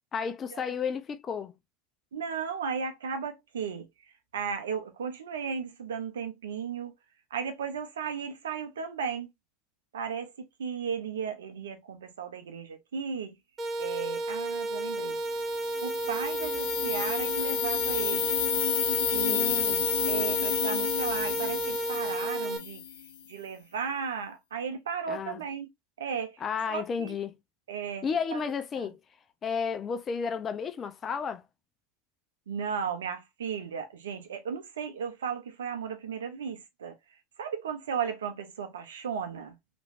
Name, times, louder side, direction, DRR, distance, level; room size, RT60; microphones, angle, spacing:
voice 1, 0.1-1.6 19.3-19.9 25.1-25.4 26.4-27.3 28.0-29.0 29.4-31.4, left 6 dB, 35° left, 0.5 m, -32 dB
voice 2, 2.1-3.9 4.3-6.9 7.3-9.3 9.9-10.3 10.6-13.3 13.8-15.2 15.8-18.3 19.0-19.7 20.1-22.8 23.3-25.7 26.0-26.4 26.7-27.2 27.7-28.9 32.5-36.9 37.4-39.5, right 6 dB, 80° right, 0.7 m, -35 dB
sound 1, 13.6-22.6, right 2 dB, 30° right, 1.0 m, -32 dB
sound 2, 15.2-23.1, left 8 dB, 80° left, 0.6 m, -30 dB
3.1 x 3.0 x 2.5 m
hypercardioid pair, 75°, 0 cm